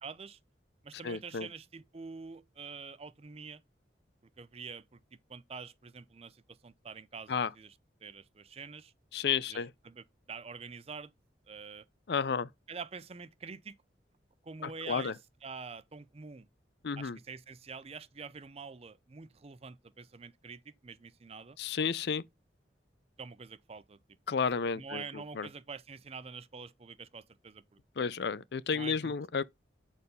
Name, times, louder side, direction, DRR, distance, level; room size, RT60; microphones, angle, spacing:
voice 1, 0.0-0.4 0.8-3.6 4.4-5.0 5.3-7.7 8.0-8.9 9.5-11.1 11.5-11.8 12.7-13.7 14.4-16.5 17.0-21.6 23.2-24.0 24.8-27.8 28.7-29.1, right 5 dB, 35° right, 0.5 m, -46 dB
voice 2, 1.0-1.5 7.3-7.5 9.1-9.7 12.1-12.5 14.6-15.1 16.8-17.2 21.6-22.2 24.3-25.5 28.0-29.4, left 6 dB, 60° left, 0.5 m, -32 dB
8.2 x 4.4 x 5.4 m
head